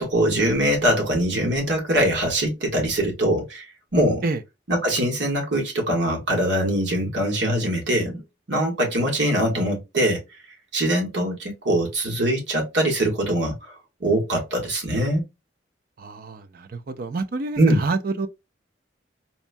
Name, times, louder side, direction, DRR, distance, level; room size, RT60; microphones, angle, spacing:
voice 1, 0.0-3.6 3.9-4.2 4.7-8.2 8.5-10.2 10.7-13.7 14.0-15.2 17.6-17.9, right 1 dB, 80° right, 1.4 m, -22 dB
voice 2, 16.0-18.3, right 3 dB, 50° right, 0.5 m, -28 dB
4.1 x 2.2 x 2.5 m
head